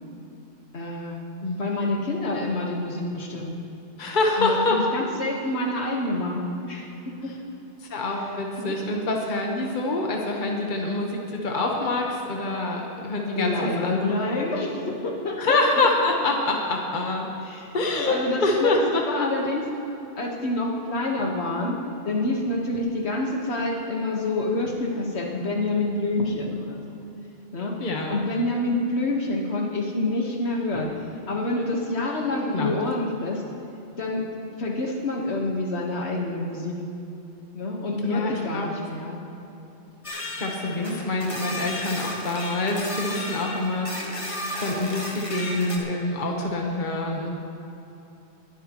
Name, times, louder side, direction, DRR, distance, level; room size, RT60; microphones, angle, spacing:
voice 1, 0.7-1.2 1.6-3.6 4.4-7.3 8.6-8.8 13.4-15.9 17.4-19.7 20.2-21.8 22.0-26.8 27.5-27.7 28.1-30.9 31.3-33.4 34.0-34.2 34.6-36.8 37.5-39.2 40.7-40.9, left 2 dB, 70° left, 0 dB, 1.7 m, -27 dB
voice 2, 4.0-4.8 7.8-14.2 15.4-17.3 17.7-19.3 27.8-28.1 32.5-32.8 38.0-38.7 40.4-44.2 44.6-47.3, left 2 dB, 45° left, 0 dB, 1.3 m, -26 dB
sound 1, 40.0-45.8, left 1 dB, 30° left, 1.5 m, -34 dB
20.5 x 11.5 x 3.0 m, 3.0 s
omnidirectional pair, 1.1 m